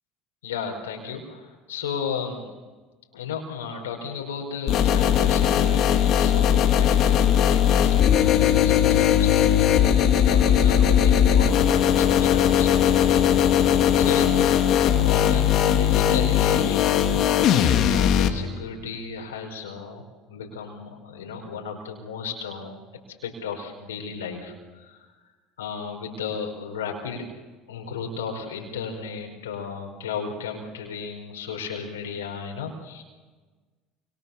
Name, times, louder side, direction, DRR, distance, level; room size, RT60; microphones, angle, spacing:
voice 1, 0.4-2.4 3.1-10.0 10.2-13.6 14.0-17.2 17.8-20.0 20.3-22.7 23.2-25.0 25.6-27.3 27.7-33.0, left 6 dB, 85° left, 2 dB, 4.7 m, -34 dB
sound 1, 4.7-18.3, left 9 dB, 55° left, 2.5 m, -19 dB
29.0 x 25.5 x 7.0 m, 1.3 s
hypercardioid pair, 75°, 0 cm